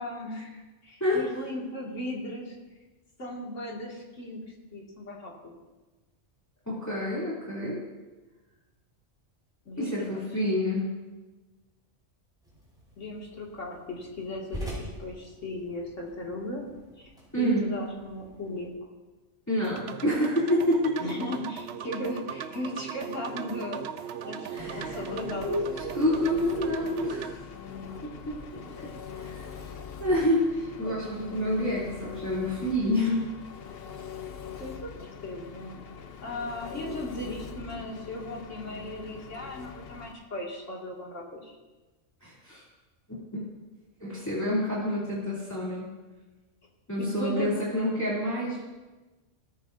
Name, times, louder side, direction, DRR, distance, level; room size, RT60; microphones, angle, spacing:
voice 1, 0.0-2.5 3.2-4.4 4.7-5.5 9.7-10.3 13.0-16.7 17.0-17.1 17.4-18.7 21.0-23.8 24.2-25.5 27.7-28.0 28.5-28.7 30.8-31.0 34.6-34.9 35.2-35.8 36.2-41.6 47.0-47.5, left 1 dB, 85° left, -3 dB, 2.6 m, -37 dB
voice 2, 6.7-7.8 9.8-10.9 17.3-17.7 19.5-21.0 24.5-25.0 25.4-27.3 28.0-28.9 29.1-29.7 30.0-33.2 42.2-42.6 43.1-43.4 44.0-45.9 46.9-48.6, left 1 dB, 15° left, -8 dB, 3.0 m, -28 dB
sound 1, 12.4-18.7, equal, 5° right, 4.6 m, -44 dB
sound 2, 19.6-27.3, right 8 dB, 65° right, 0.8 m, -38 dB
Engine, 24.6-40.1, left 6 dB, 55° left, 0.9 m, -42 dB
17.5 x 14.0 x 2.7 m, 1.2 s
omnidirectional pair, 1.2 m